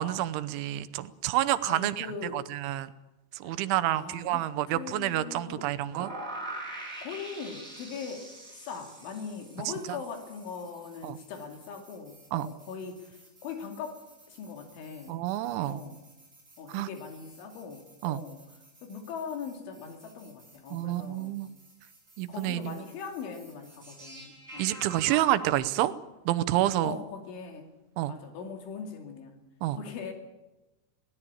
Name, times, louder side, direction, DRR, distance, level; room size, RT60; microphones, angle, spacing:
voice 1, 0.0-2.1 2.3-2.9 3.3-6.1 9.9-10.0 11.0-11.2 12.3-12.5 15.1-15.8 16.7-16.9 18.0-18.2 20.7-21.5 22.2-22.8 24.6-25.9 26.3-27.0 28.0-28.1 29.6-29.8, right 14 dB, 90° right, 12 dB, 3.4 m, -28 dB
voice 2, 1.7-2.5 3.4-4.4 4.7-5.7 7.0-14.0 14.3-15.2 15.6-16.0 16.6-18.5 18.8-21.4 22.3-24.8 26.8-27.7 28.1-29.4 29.8-30.1, left 6 dB, 90° left, 4 dB, 5.0 m, -41 dB
sound 1, 5.9-25.5, right 2 dB, 15° right, 7.5 m, -47 dB
21.0 x 18.5 x 8.7 m, 1.0 s
omnidirectional pair, 5.3 m